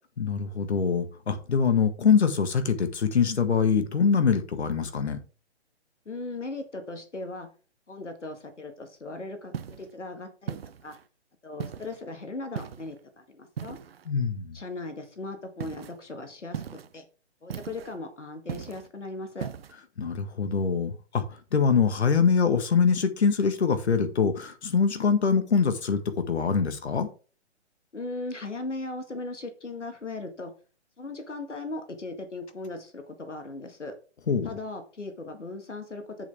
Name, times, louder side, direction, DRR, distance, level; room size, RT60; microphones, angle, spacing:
voice 1, 0.2-5.2 14.1-14.6 20.0-21.2 21.5-27.1 34.3-34.5, left 6 dB, 65° left, 1.7 m, -24 dB
voice 2, 6.1-7.5 7.9-10.6 10.8-11.0 11.4-13.8 14.5-16.6 16.9-17.1 17.4-19.5 27.9-30.5 31.0-33.9 34.4-36.3, left 2 dB, 90° left, 1.8 m, -38 dB
sound 1, 9.5-9.9 10.5-11.0 11.6-12.0 12.6-13.0 13.6-14.1 15.6-16.0 16.5-17.0 17.5-18.0 18.5-18.9 19.4-19.8, right 8 dB, 55° right, 0.8 m, -38 dB
8.2 x 7.4 x 3.5 m
figure-of-eight pair, 135°, 35 cm